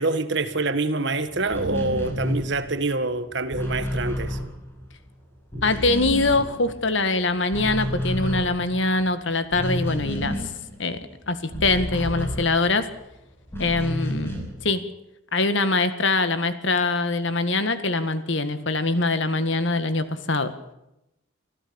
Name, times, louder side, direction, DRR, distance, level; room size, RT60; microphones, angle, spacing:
voice 1, 0.0-4.4, right 3 dB, 55° right, 1.6 m, -26 dB
sound 1, 1.4-5.1 5.4-7.1 7.4-13.0 13.5-14.7, equal, 10° left, 6.1 m, -30 dB
voice 2, 5.6-10.4 10.8-11.0 11.3-12.9 13.6-14.3 14.6-14.8 15.3-20.5, left 3 dB, 60° left, 1.8 m, -23 dB
25.5 x 15.0 x 7.1 m
head